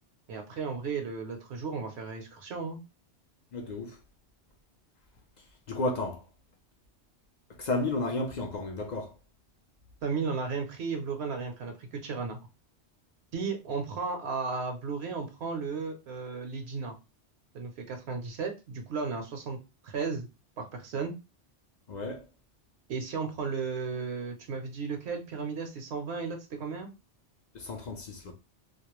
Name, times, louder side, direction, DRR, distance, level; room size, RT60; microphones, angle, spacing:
voice 1, 0.3-2.8 10.0-12.4 13.3-17.0 17.5-19.6 19.8-20.3 20.6-21.1 22.9-26.9, right 4 dB, 70° right, 0.8 m, -34 dB
voice 2, 3.5-4.0 5.7-6.2 7.6-9.1 21.9-22.2 27.5-28.3, left 2 dB, 55° left, 0.5 m, -32 dB
2.3 x 2.0 x 2.9 m
omnidirectional pair, 1.2 m